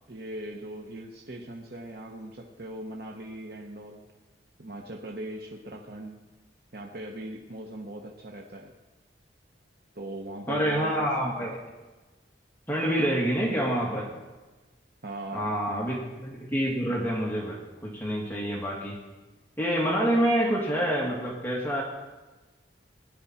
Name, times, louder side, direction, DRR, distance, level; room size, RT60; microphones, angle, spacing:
voice 1, 0.1-4.0 4.6-6.2 6.7-8.7 9.9-11.1 11.4-11.5 15.0-15.9, right 1 dB, 55° right, 0 dB, 1.1 m, -40 dB
voice 2, 10.5-11.5 12.7-14.1 15.3-19.0 19.6-21.8, equal, 10° left, -3 dB, 2.2 m, -27 dB
18.5 x 11.0 x 4.4 m, 1.2 s
head